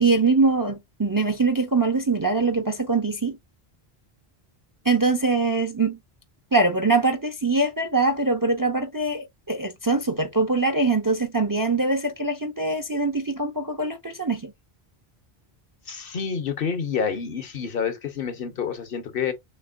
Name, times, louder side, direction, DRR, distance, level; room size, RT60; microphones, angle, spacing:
voice 1, 0.0-3.4 4.9-6.0 6.5-14.5, right 3 dB, 25° right, 0.5 m, -23 dB
voice 2, 15.9-19.3, left 6 dB, 65° left, 1.0 m, -28 dB
6.6 x 2.8 x 2.5 m
omnidirectional pair, 1.0 m